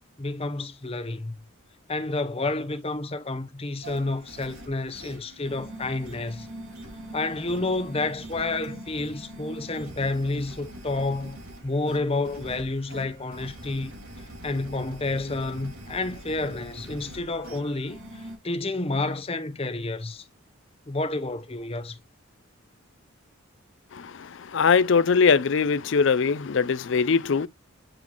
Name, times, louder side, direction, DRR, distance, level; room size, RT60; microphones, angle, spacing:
voice 1, 0.2-1.3 1.9-6.5 7.1-11.4 11.6-13.9 14.4-20.2 20.9-22.0, left 2 dB, 30° left, 0.8 m, -30 dB
sound 1, 3.8-18.4, right 1 dB, 90° right, 2.2 m, -43 dB
voice 2, 24.5-27.5, left 5 dB, 60° left, 0.5 m, -21 dB
9.0 x 4.0 x 3.0 m
head